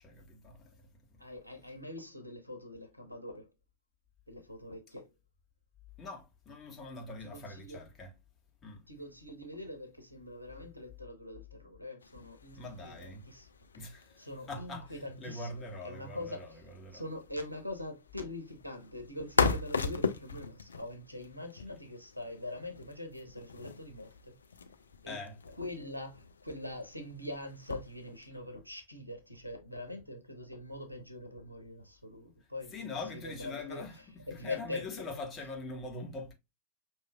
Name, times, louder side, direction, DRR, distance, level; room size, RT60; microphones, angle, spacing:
voice 1, 0.0-1.2 6.0-8.1 8.6-8.9 12.6-13.3 13.7-17.0 25.1-25.4 32.7-36.3, left 3 dB, 25° left, 1.6 m, -43 dB
voice 2, 1.2-3.5 4.3-5.1 7.3-7.8 8.9-13.5 14.2-16.6 16.9-24.3 25.0-25.2 25.5-33.8 34.3-34.9, left 1 dB, 90° right, 1.0 m, -43 dB
sound 1, 12.0-28.3, left 5 dB, 70° left, 0.5 m, -39 dB
5.8 x 3.0 x 2.2 m
figure-of-eight pair, 90°, 0 cm